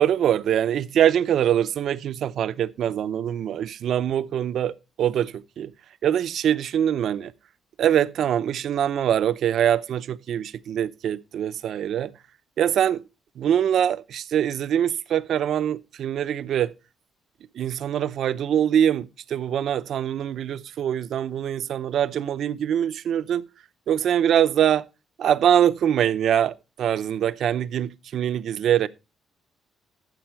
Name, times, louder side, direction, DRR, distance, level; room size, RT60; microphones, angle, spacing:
voice 1, 0.0-5.7 6.0-7.3 7.8-12.1 12.6-13.0 13.4-16.7 17.5-23.4 23.9-24.8 25.2-28.9, right 10 dB, 55° right, 0.6 m, -23 dB
13.0 x 7.7 x 4.5 m
cardioid pair, 160°, 0 cm